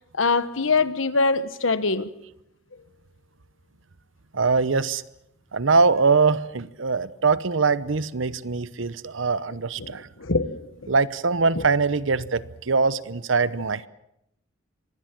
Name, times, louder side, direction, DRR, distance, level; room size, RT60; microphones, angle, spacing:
voice 1, 0.1-2.1 9.8-10.9, left 3 dB, 75° left, 1.3 m, -24 dB
voice 2, 4.3-5.0 5.5-10.1 10.9-13.9, right 4 dB, 65° right, 0.9 m, -22 dB
24.5 x 19.5 x 7.5 m
head